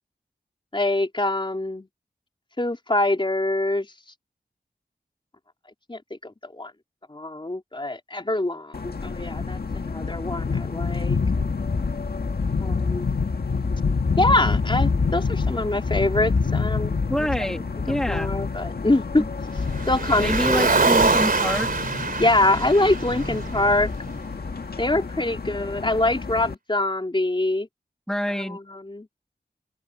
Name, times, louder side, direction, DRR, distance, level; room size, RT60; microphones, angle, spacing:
voice 1, 0.7-1.9 2.6-3.9 5.9-6.7 7.1-11.2 12.5-13.1 14.2-17.3 17.9-19.3 19.9-20.7 22.2-23.9 24.8-27.7 28.4-29.1, left 2 dB, 30° left, 3.9 m, -24 dB
sound 1, 8.7-26.5, left 4 dB, 70° left, 1.7 m, -27 dB
voice 2, 17.1-18.3 20.2-21.8 28.1-28.6, equal, 5° left, 2.5 m, -27 dB
Car, 19.7-24.1, right 3 dB, 60° right, 3.1 m, -24 dB
open air
wide cardioid pair, 75°, 17 cm